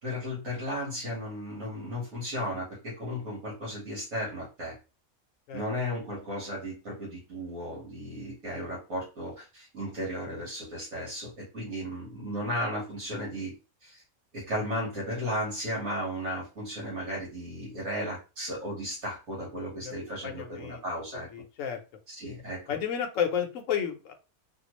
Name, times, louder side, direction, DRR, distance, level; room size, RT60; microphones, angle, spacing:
voice 1, 0.0-4.8 5.5-13.5 13.8-14.0 14.3-21.3 22.2-22.7, equal, 70° right, -5 dB, 1.8 m, -35 dB
voice 2, 20.2-20.8 21.3-21.8 22.7-24.1, left 8 dB, 65° left, 4 dB, 1.0 m, -31 dB
3.5 x 2.4 x 3.0 m, 0.31 s
omnidirectional pair, 1.5 m